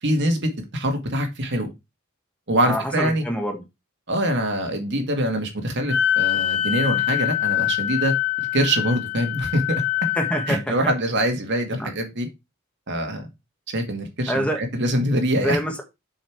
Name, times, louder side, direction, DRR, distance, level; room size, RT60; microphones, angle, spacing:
voice 1, 0.0-1.7 2.5-3.2 4.1-8.1 8.5-9.8 10.5-12.3 12.9-13.3 13.7-15.6, right 1 dB, 55° right, 2.1 m, -24 dB
voice 2, 2.6-3.6 10.1-10.7 11.8-11.9 14.3-14.6 15.4-15.8, equal, 5° left, 1.6 m, -26 dB
Wind instrument woodwind instrument, 5.9-10.6, left 12 dB, 65° left, 2.1 m, -24 dB
7.4 x 5.6 x 4.7 m
head